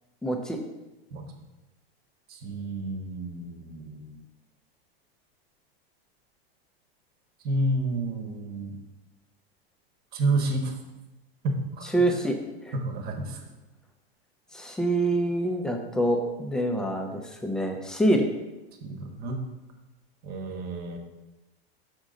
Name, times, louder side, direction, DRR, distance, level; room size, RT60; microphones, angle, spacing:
voice 1, 0.2-0.6 11.8-12.4 12.7-12.8 14.5-18.3, right 1 dB, ahead, 3 dB, 0.3 m, -26 dB
voice 2, 2.3-4.1 7.4-8.7 10.1-10.7 11.4-11.9 12.7-13.4 18.8-19.5 20.2-21.0, right 2 dB, 30° right, 5 dB, 0.9 m, -30 dB
6.2 x 5.2 x 3.7 m, 1.0 s
supercardioid pair, 135°, 31 cm